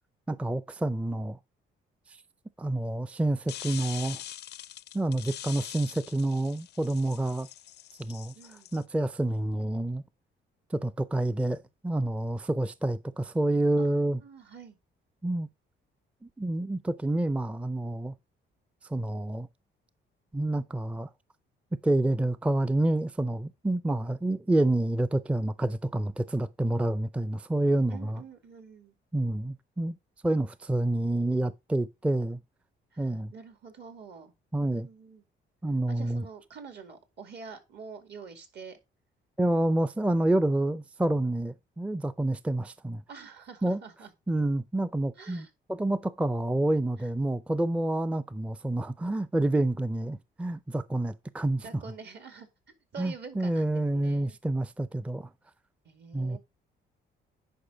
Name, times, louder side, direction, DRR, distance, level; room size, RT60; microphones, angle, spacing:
voice 1, 0.3-1.4 2.1-2.2 2.6-4.2 4.9-7.5 8.0-8.3 8.7-10.0 10.7-14.2 15.2-15.5 16.2-18.1 18.9-19.5 20.3-21.1 21.8-28.2 29.1-30.0 30.2-32.4 33.0-33.3 34.5-34.9 35.6-36.3 39.4-43.0 43.6-43.8 44.3-51.6 53.0-55.3 56.1-56.4, right 1 dB, 5° right, 0.4 m, -28 dB
sound 1, 3.5-8.8, left 12 dB, 55° left, 0.4 m, -43 dB
voice 2, 8.3-8.7 13.8-14.8 27.9-29.0 32.9-34.3 34.6-35.2 35.9-38.8 43.1-44.1 45.2-45.5 47.0-47.1 51.6-52.5 52.9-54.4 55.8-56.4, right 5 dB, 60° right, 2.3 m, -46 dB
10.0 x 5.1 x 3.8 m
cardioid pair, 90°, 20 cm